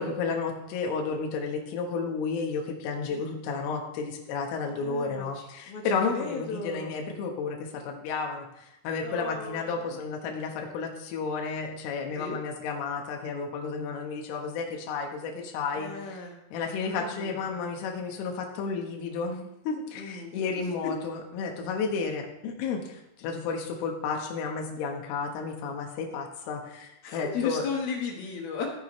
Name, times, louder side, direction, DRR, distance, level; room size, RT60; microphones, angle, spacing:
voice 1, 0.0-15.9 16.5-27.6, left 5 dB, 85° left, 2 dB, 3.9 m, -32 dB
voice 2, 4.8-6.9 9.0-10.0 12.1-12.4 15.7-16.4 16.8-17.4 19.9-20.9 27.0-28.7, left 5 dB, 60° left, 1 dB, 2.9 m, -36 dB
15.0 x 9.2 x 3.2 m, 0.86 s
omnidirectional pair, 5.6 m